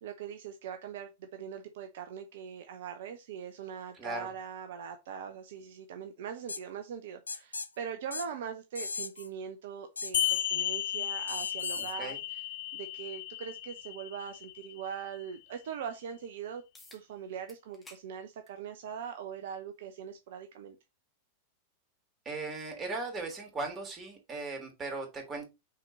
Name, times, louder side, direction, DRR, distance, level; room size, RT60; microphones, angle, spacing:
voice 1, 0.0-12.4 12.7-16.6 16.9-20.8, right 7 dB, 55° right, 0.8 m, -41 dB
voice 2, 3.9-4.3 11.8-12.2 22.2-25.5, right 3 dB, 20° right, 3.1 m, -38 dB
sound 1, 6.5-6.6 7.3-7.7 8.1-8.3 8.7-9.3 10.0-10.4 11.3-11.9, left 4 dB, 80° left, 0.5 m, -38 dB
sound 2, 10.1-15.2, left 12 dB, 60° left, 0.8 m, -34 dB
sound 3, 16.7-17.0 17.5-18.1 18.5-18.6 19.7-19.8 24.7-24.8, left 2 dB, 15° left, 2.1 m, -54 dB
6.1 x 4.5 x 4.2 m
figure-of-eight pair, 90°, 0 cm